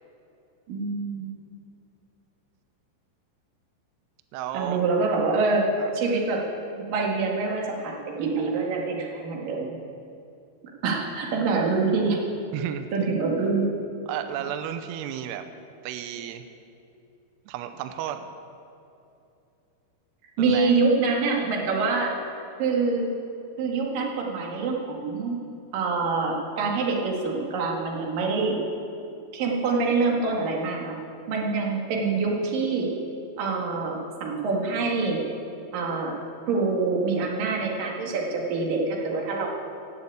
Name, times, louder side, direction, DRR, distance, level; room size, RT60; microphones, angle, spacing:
voice 1, 0.7-1.3 4.5-5.7 5.9-6.4 6.8-9.8 10.8-12.2 12.9-13.7 20.4-22.1 22.6-23.1 23.6-25.4 25.7-28.6 29.3-31.0 31.3-32.9 33.4-35.2 35.7-36.1 36.5-39.5, right 4 dB, 55° right, -1 dB, 3.1 m, -25 dB
voice 2, 4.3-4.8 5.8-5.9 12.5-12.9 14.1-15.5 15.8-16.4 17.5-18.3 20.4-20.8, right 10 dB, 85° right, 9 dB, 2.4 m, -33 dB
17.5 x 7.1 x 8.4 m, 2.7 s
omnidirectional pair, 5.5 m